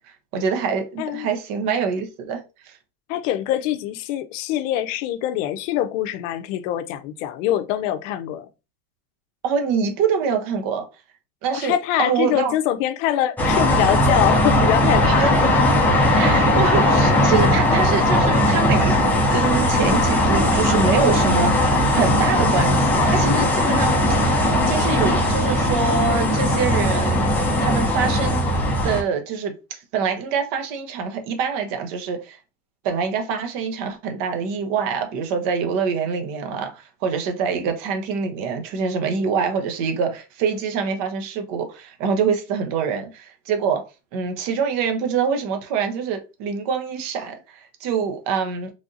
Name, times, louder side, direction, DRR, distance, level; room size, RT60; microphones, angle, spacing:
voice 1, 0.3-2.8 9.4-10.9 11.4-12.5 15.0-15.3 16.2-24.2 24.7-27.3 27.6-28.4 28.8-32.4 32.8-43.8 44.1-48.7, right 6 dB, 55° right, 0.8 m, -25 dB
voice 2, 3.1-8.4 11.5-15.3, left 12 dB, 70° left, 0.5 m, -24 dB
sound 1, 13.4-29.0, left 1 dB, 5° left, 0.4 m, -18 dB
3.4 x 2.6 x 2.4 m
supercardioid pair, 140°, 40 cm